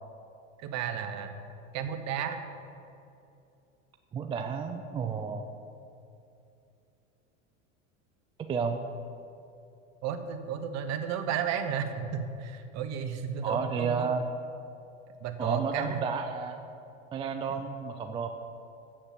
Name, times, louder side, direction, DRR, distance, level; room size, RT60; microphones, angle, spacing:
voice 1, 0.6-1.3 1.7-2.4 10.0-14.1 15.2-16.0 17.5-17.6, right 7 dB, 45° right, 7 dB, 0.9 m, -33 dB
voice 2, 4.1-5.4 8.5-8.8 13.4-14.2 15.4-16.6 17.1-18.3, right 5 dB, 15° right, 5 dB, 0.3 m, -31 dB
7.2 x 6.6 x 7.4 m, 2.7 s
hypercardioid pair, 105°, 38 cm